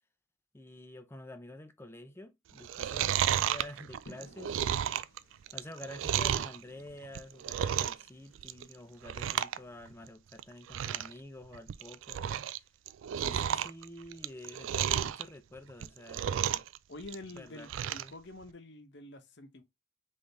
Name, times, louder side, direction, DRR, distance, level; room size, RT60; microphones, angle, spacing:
voice 1, 0.5-4.9 5.5-12.7 13.2-16.7 17.3-18.1, left 1 dB, 10° left, 0.5 m, -49 dB
Chewing mastication, 2.6-6.6 7.0-8.1 8.4-8.7 9.0-9.6 9.9-10.0 10.4-10.5 10.7-11.1 11.5-12.6 12.9-15.2 15.7-16.8 17.0-18.1 18.5-18.6, right 10 dB, 70° right, 0.3 m, -32 dB
sound 1, 4.1-9.9, left 1 dB, 85° left, 1.4 m, -61 dB
voice 2, 16.9-19.6, left 2 dB, 60° left, 0.9 m, -48 dB
3.7 x 3.3 x 3.9 m
head